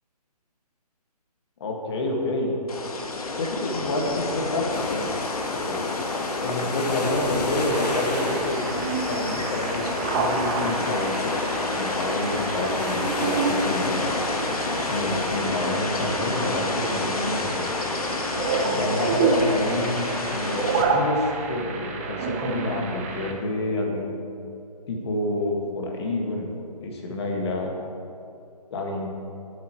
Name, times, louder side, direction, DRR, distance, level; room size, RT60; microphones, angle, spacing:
voice 1, 1.6-2.5 3.4-5.1 5.5-5.9 6.4-8.7 9.1-11.4 11.8-14.1 14.8-17.6 18.5-24.2 24.9-26.5 26.8-27.7 28.7-29.1, left 1 dB, 40° left, 0 dB, 2.0 m, -28 dB
sound 1, 2.7-20.8, left 3 dB, 60° left, 1.6 m, -29 dB
sound 2, 4.7-15.4, left 2 dB, 80° left, 1.6 m, -34 dB
sound 3, 7.7-23.3, right 4 dB, 20° right, 0.7 m, -29 dB
19.5 x 8.1 x 3.2 m, 2.6 s
figure-of-eight pair, 150°, 21 cm